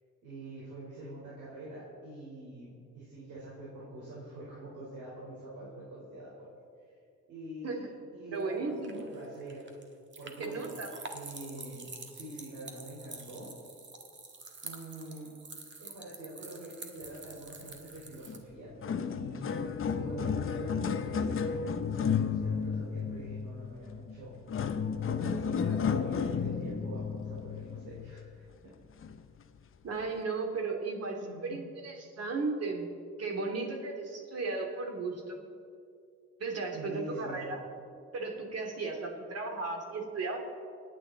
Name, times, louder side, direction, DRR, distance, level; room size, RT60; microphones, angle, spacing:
voice 1, 0.2-6.5 7.3-9.7 10.2-10.8 11.1-13.5 14.6-15.3 15.8-18.7 19.0-19.6 19.9-28.5 31.2-31.6 36.7-37.6, right 1 dB, 80° right, -6 dB, 4.2 m, -45 dB
voice 2, 8.3-9.0 10.4-10.9 29.8-32.9 33.2-35.4 36.4-37.6 38.1-40.4, right 3 dB, 55° right, 2 dB, 2.8 m, -35 dB
sound 1, 8.4-18.4, right 3 dB, 40° right, 1.7 m, -47 dB
sound 2, 18.3-18.4 18.7-28.4 29.0-29.2 29.9-30.0, left 6 dB, 45° left, 0.9 m, -33 dB
27.0 x 9.1 x 4.0 m, 2.4 s
cardioid pair, 90°, 30 cm